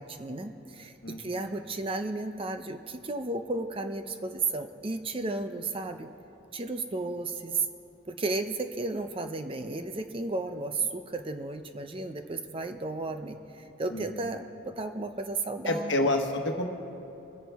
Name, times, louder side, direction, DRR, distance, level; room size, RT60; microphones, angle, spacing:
voice 1, 0.0-6.1 6.5-7.7 8.1-16.1, right 3 dB, 25° right, 7 dB, 0.5 m, -33 dB
voice 2, 1.0-1.5 13.9-14.3 15.6-16.7, left 1 dB, 60° left, 3 dB, 1.2 m, -29 dB
24.5 x 10.5 x 3.5 m, 2.9 s
head